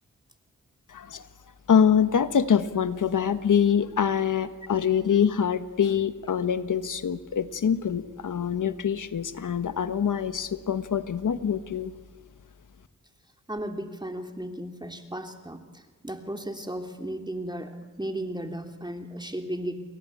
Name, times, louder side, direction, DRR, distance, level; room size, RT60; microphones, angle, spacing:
voice 1, 0.9-1.3 1.7-11.9, left 7 dB, 75° left, 11 dB, 1.4 m, -24 dB
voice 2, 13.5-19.8, right 1 dB, 15° right, 4 dB, 3.1 m, -35 dB
29.5 x 22.5 x 8.6 m, 1.4 s
cardioid pair, 60°, 31 cm